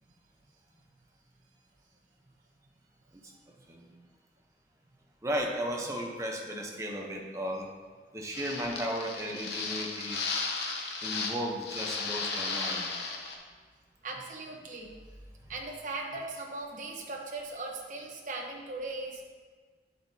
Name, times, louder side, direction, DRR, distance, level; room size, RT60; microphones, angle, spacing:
voice 1, 5.2-7.7 8.1-10.2 11.0-12.9, equal, 15° right, 0 dB, 0.9 m, -35 dB
sound 1, 8.3-11.4 11.6-13.3, left 4 dB, 70° left, 1.0 m, -34 dB
voice 2, 14.0-15.0 15.5-19.3, right 2 dB, 45° right, 0 dB, 1.0 m, -39 dB
8.5 x 8.0 x 2.8 m, 1.5 s
head